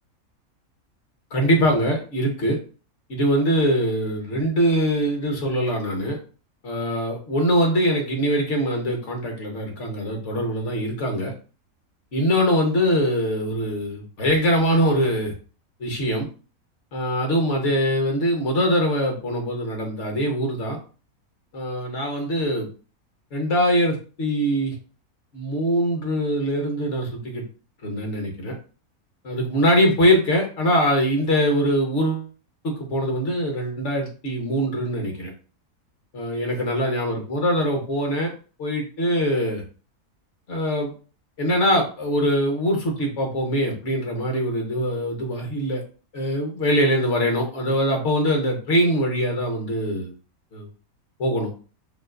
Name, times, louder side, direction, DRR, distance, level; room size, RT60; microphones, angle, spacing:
voice 1, 1.3-2.6 3.1-6.2 6.6-11.3 12.1-15.3 15.8-16.3 16.9-20.8 21.5-22.7 23.3-24.7 25.3-27.4 27.8-28.5 29.2-32.3 32.6-35.3 36.1-38.3 38.6-39.6 40.5-40.9 41.4-45.8 46.1-50.1 50.5-50.7 51.2-51.5, equal, 55° left, 2 dB, 1.4 m, -23 dB
5.5 x 2.5 x 2.5 m, 0.36 s
omnidirectional pair, 1.6 m